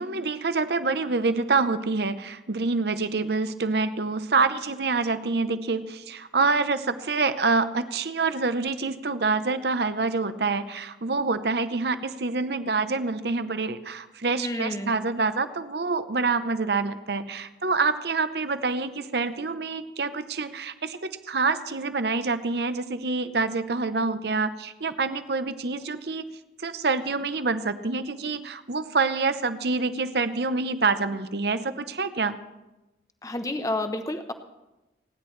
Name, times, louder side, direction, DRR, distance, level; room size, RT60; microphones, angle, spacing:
voice 1, 0.0-26.3 26.6-32.4, right 4 dB, 65° right, 12 dB, 0.7 m, -26 dB
voice 2, 14.3-15.0 33.2-34.3, left 1 dB, 20° left, 7 dB, 0.9 m, -30 dB
29.5 x 10.5 x 3.2 m, 1.0 s
head